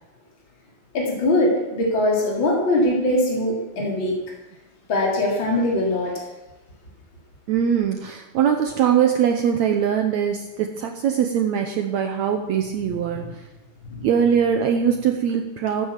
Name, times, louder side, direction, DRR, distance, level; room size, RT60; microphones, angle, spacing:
voice 1, 0.9-4.1 4.9-6.1, left 1 dB, 30° left, -2 dB, 4.0 m, -21 dB
voice 2, 7.5-13.4 14.0-15.9, right 8 dB, 85° right, 5 dB, 1.5 m, -22 dB
16.0 x 9.6 x 7.4 m, 1.0 s
omnidirectional pair, 4.6 m